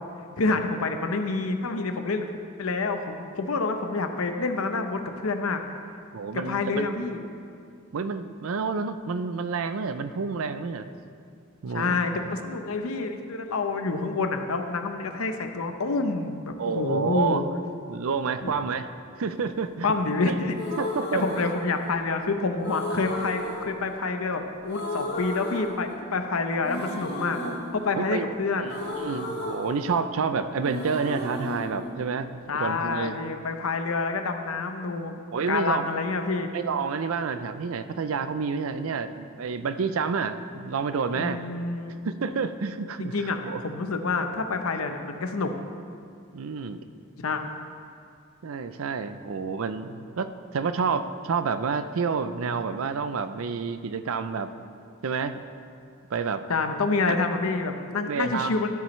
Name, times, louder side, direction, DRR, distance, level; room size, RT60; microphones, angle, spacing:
voice 1, 0.4-2.3 2.6-5.6 6.5-7.3 11.7-17.4 18.4-18.5 19.8-20.5 21.2-27.4 27.7-28.8 32.5-35.2 35.5-36.5 41.1-42.0 43.0-45.5 47.2-47.4 56.5-58.7, left 3 dB, 90° left, 6 dB, 0.8 m, -28 dB
voice 2, 6.1-6.9 7.9-10.9 11.6-12.0 16.6-17.4 17.9-18.8 19.2-19.9 20.2-20.3 20.8-21.5 27.4-27.5 27.9-28.3 28.6-33.2 35.3-35.8 36.5-41.4 42.0-43.6 46.3-46.8 48.4-54.5 55.0-55.4 56.1-56.4 58.1-58.5, right 5 dB, 80° right, 11 dB, 0.5 m, -29 dB
sound 1, 20.5-22.2 22.6-24.4 24.7-26.3 26.6-30.3 30.6-32.7, left 1 dB, 55° left, 1.5 m, -34 dB
13.0 x 8.5 x 3.1 m, 2.3 s
head